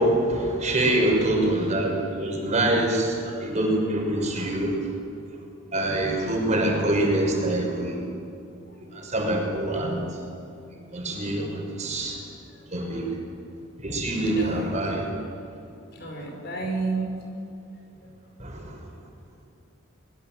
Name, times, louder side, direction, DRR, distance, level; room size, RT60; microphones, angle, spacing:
voice 1, 0.0-4.8 5.7-8.0 8.9-10.0 10.9-12.2 12.7-13.1 13.8-15.1 18.4-18.7, right 1 dB, 35° right, 0 dB, 6.1 m, -25 dB
voice 2, 12.7-13.1 14.1-14.7 15.9-17.1, right 3 dB, 55° left, 1 dB, 5.7 m, -32 dB
24.0 x 22.5 x 7.7 m, 2.7 s
head